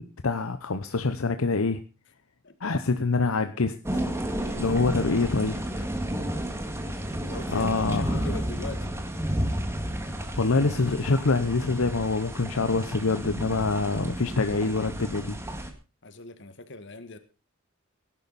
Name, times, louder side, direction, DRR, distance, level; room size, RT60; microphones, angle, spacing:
voice 1, 0.0-1.8 2.6-4.0 4.5-5.9 7.5-8.3 10.0-15.4, left 3 dB, 80° left, 9 dB, 0.9 m, -26 dB
sound 1, 3.8-15.7, right 1 dB, 15° right, 2.0 m, -32 dB
voice 2, 7.2-9.0 16.0-17.2, left 2 dB, 60° left, 10 dB, 1.8 m, -41 dB
17.5 x 11.0 x 4.2 m, 0.32 s
head